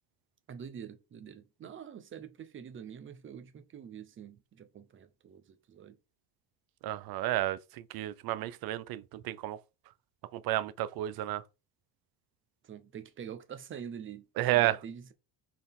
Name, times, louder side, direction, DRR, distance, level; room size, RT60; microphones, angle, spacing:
voice 1, 0.5-6.0 12.6-14.2 14.5-15.1, right 8 dB, 30° right, 0.8 m, -45 dB
voice 2, 6.8-9.6 10.3-11.4 14.4-14.8, right 14 dB, 60° right, 0.7 m, -31 dB
6.7 x 4.0 x 3.6 m
cardioid pair, 155°, 42 cm